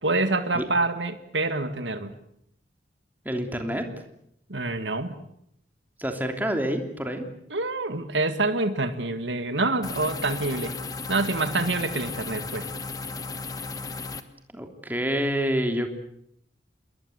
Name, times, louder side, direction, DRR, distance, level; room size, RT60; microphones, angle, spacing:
voice 1, 0.0-2.1 4.5-5.2 7.5-10.7 11.1-12.7, right 2 dB, 80° right, 9 dB, 1.9 m, -26 dB
voice 2, 3.2-3.9 6.0-7.2 14.5-15.9, equal, 10° right, 4 dB, 3.2 m, -27 dB
sound 1, 9.8-14.2, left 3 dB, 20° left, 1.5 m, -35 dB
28.0 x 22.0 x 8.0 m, 0.73 s
head